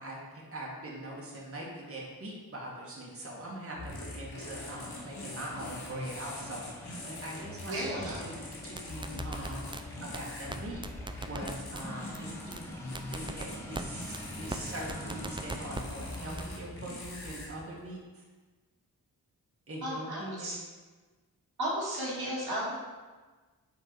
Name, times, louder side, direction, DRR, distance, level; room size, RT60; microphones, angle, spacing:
voice 1, 0.0-8.3 8.6-9.7 10.0-12.7 13.1-18.2 19.7-20.5, right 1 dB, 35° right, -4 dB, 1.9 m, -42 dB
sound 1, 3.7-17.5, left 2 dB, 85° left, 1.6 m, -43 dB
sound 2, 4.3-17.9, left 1 dB, 5° left, 1.1 m, -47 dB
voice 2, 7.7-8.2 19.8-20.6 21.6-22.8, right 1 dB, 80° right, -5 dB, 2.0 m, -34 dB
sound 3, 8.5-9.8 10.1-10.2 10.5-10.6 10.8-11.8 12.1-12.2 12.5-12.6 12.9-13.8 14.1-14.2 14.5-14.6 14.9-15.8 16.1-16.4, right 3 dB, 15° right, 0.4 m, -38 dB
5.9 x 4.6 x 4.7 m, 1.3 s
cardioid pair, 60°, 38 cm